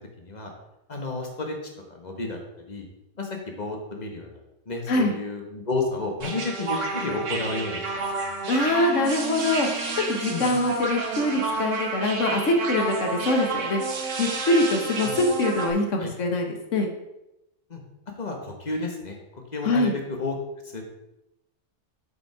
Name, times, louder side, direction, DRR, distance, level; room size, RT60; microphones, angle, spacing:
voice 1, 0.2-0.5 0.9-1.6 1.9-2.4 2.7-2.9 3.2-3.3 3.6-8.3 10.3-10.6 15.0-15.1 16.0-16.1 17.7-17.8 18.2-19.2 19.5-20.4 20.7-20.8, left 3 dB, 35° left, 2 dB, 1.5 m, -31 dB
sound 1, 6.2-15.7, right 3 dB, 70° right, 1.4 m, -30 dB
voice 2, 8.5-13.8 14.2-16.9 19.6-20.0, left 2 dB, 70° left, 3 dB, 1.5 m, -24 dB
8.2 x 5.2 x 4.8 m, 0.92 s
omnidirectional pair, 1.3 m